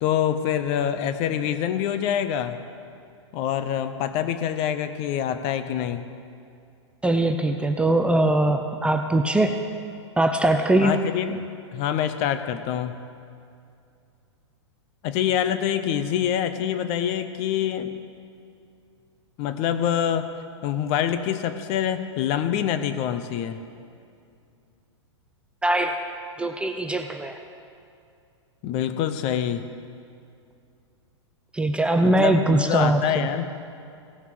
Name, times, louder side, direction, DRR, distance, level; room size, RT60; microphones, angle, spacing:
voice 1, 0.0-2.6 3.3-6.0 10.8-13.0 15.0-18.0 19.4-20.3 20.6-23.6 28.6-29.6 31.9-33.5, left 9 dB, 40° left, 10 dB, 0.8 m, -25 dB
voice 2, 7.0-9.6 10.2-10.9 25.6-26.0 26.4-27.4 31.5-33.3, right 1 dB, 5° right, 5 dB, 0.5 m, -21 dB
17.0 x 5.7 x 6.2 m, 2.5 s
hypercardioid pair, 115°, 15 cm